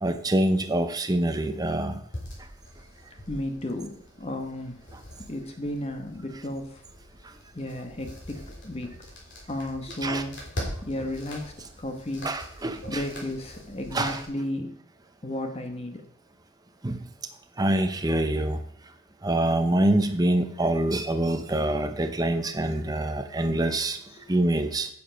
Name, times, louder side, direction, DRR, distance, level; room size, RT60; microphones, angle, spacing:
voice 1, 0.0-2.0 10.0-10.2 12.2-13.0 13.9-14.2 16.8-17.0 17.6-18.6 19.2-24.0 24.3-24.9, right 1 dB, 20° right, 7 dB, 0.7 m, -25 dB
sound 1, 2.1-14.3, left 1 dB, 55° left, 3.7 m, -42 dB
voice 2, 3.3-3.9 4.2-4.8 5.3-6.8 7.5-8.9 9.5-10.4 10.8-12.3 12.9-14.7 15.2-16.0 24.1-24.2, left 1 dB, 30° left, 5 dB, 1.1 m, -33 dB
9.8 x 7.0 x 5.1 m, 0.67 s
head